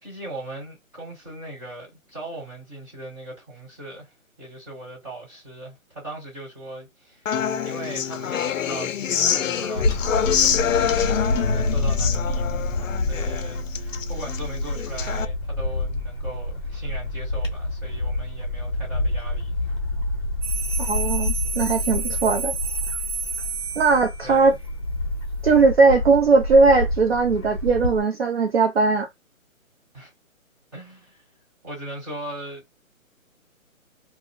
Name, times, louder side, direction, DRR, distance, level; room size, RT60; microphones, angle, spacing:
voice 1, 0.0-7.3 7.6-19.7 22.1-22.3 24.2-24.5 29.9-30.1 30.7-31.2 31.6-32.7, right 1 dB, 15° right, 1.3 m, -39 dB
Human voice / Acoustic guitar, 7.3-15.2, left 8 dB, 65° left, 0.5 m, -26 dB
Bird / Wind, 9.8-28.0, left 2 dB, 20° left, 0.7 m, -28 dB
sound 1, 20.4-24.4, right 4 dB, 85° right, 1.0 m, -31 dB
voice 2, 20.9-22.5 23.8-24.6 25.4-29.1, right 4 dB, 50° right, 0.5 m, -19 dB
2.5 x 2.0 x 3.6 m
hypercardioid pair, 165°, 42 cm